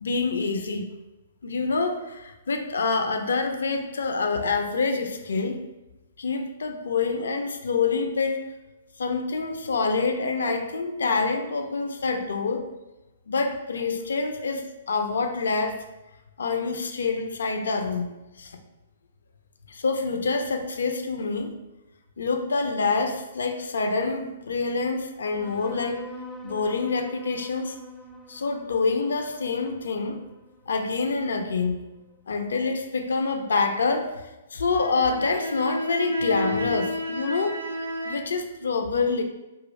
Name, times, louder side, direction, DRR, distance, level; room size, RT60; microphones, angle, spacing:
voice 1, 0.0-0.9 1.4-5.7 6.2-8.4 9.0-12.7 13.3-15.8 16.4-18.1 18.4-18.6 19.7-21.5 22.2-26.1 26.4-27.8 28.3-30.2 30.7-31.8 32.3-37.6 38.0-39.2, left 4 dB, 70° left, 6 dB, 0.4 m, -26 dB
sound 1, 25.2-32.1, left 1 dB, 5° left, 0.4 m, -45 dB
sound 2, 34.6-38.2, left 1 dB, 75° right, 0.5 m, -31 dB
3.5 x 2.4 x 3.1 m, 1.0 s
figure-of-eight pair, 120°, 0 cm